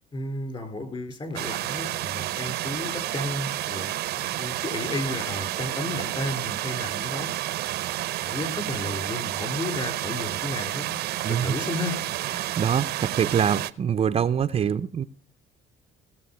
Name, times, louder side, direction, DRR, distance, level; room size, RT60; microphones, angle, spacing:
voice 1, 0.1-10.9 11.4-11.9, left 2 dB, 30° left, 7 dB, 4.2 m, -33 dB
sound 1, 1.4-13.7, right 15 dB, 75° right, 0.7 m, -30 dB
voice 2, 11.2-11.5 12.3-15.0, right 8 dB, 35° right, 11 dB, 0.5 m, -24 dB
17.5 x 7.0 x 5.5 m, 0.39 s
cardioid pair, 110°, 17 cm